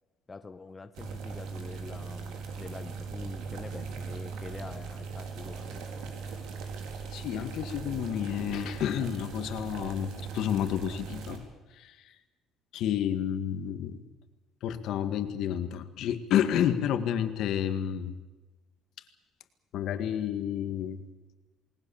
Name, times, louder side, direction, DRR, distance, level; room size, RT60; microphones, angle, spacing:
voice 1, 0.3-5.8, left 4 dB, 15° left, 8 dB, 0.9 m, -45 dB
sound 1, 0.9-11.4, right 5 dB, 85° right, 4.2 m, -39 dB
voice 2, 7.1-11.4 11.7-12.1 12.7-14.0 14.6-18.2 19.7-21.0, left 10 dB, 65° left, 9 dB, 2.0 m, -30 dB
28.5 x 19.5 x 7.3 m, 1.2 s
cardioid pair, 160°, 0 cm